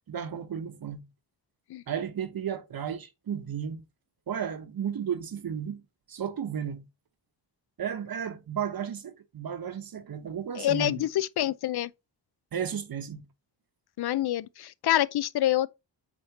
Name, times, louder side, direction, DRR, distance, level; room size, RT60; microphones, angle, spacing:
voice 1, 0.1-1.0 1.9-3.8 4.3-6.9 7.8-11.0 12.5-13.2, right 8 dB, 55° right, 1.0 m, -34 dB
voice 2, 10.6-11.9 14.0-15.7, left 13 dB, 60° left, 0.5 m, -26 dB
8.3 x 4.3 x 2.9 m
wide cardioid pair, 160°, 43 cm